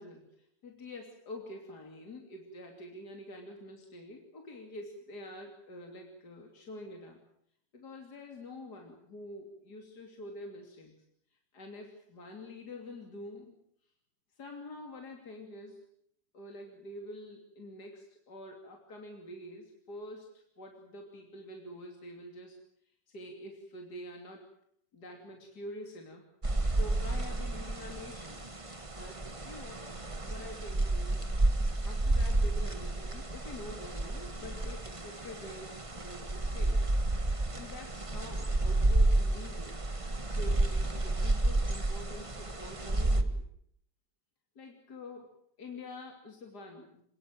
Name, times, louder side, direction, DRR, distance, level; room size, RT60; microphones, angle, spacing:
voice 1, 0.0-7.2 7.7-10.9 11.5-13.6 14.4-15.8 16.3-22.6 23.1-24.4 24.9-26.2 26.7-28.5 28.9-29.8 30.2-31.3 31.8-36.8 37.5-39.8 40.2-43.4 44.6-47.0, left 1 dB, 60° left, 2 dB, 3.5 m, -46 dB
sound 1, 26.4-43.2, right 2 dB, 20° right, 1.5 m, -31 dB
27.0 x 19.5 x 7.7 m, 0.69 s
omnidirectional pair, 1.9 m